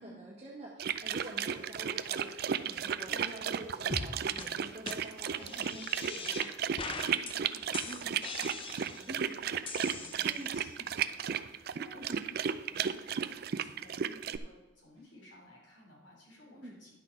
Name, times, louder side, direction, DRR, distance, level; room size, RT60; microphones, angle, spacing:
voice 1, 0.0-6.6 7.9-8.2 9.1-9.3 10.2-10.5 11.9-12.2 16.5-16.7, right 1 dB, 30° right, -4 dB, 1.3 m, -47 dB
sound 1, 0.8-14.4, right 8 dB, 50° right, 0.4 m, -34 dB
sound 2, 3.9-4.1 4.4-4.5 4.9-5.0 5.4-6.5 6.8-7.3 7.7-9.1 9.7-10.6, left 4 dB, 25° left, 0.6 m, -41 dB
voice 2, 6.8-16.9, left 1 dB, 65° left, -3 dB, 3.4 m, -56 dB
10.5 x 6.2 x 4.5 m, 1.1 s
head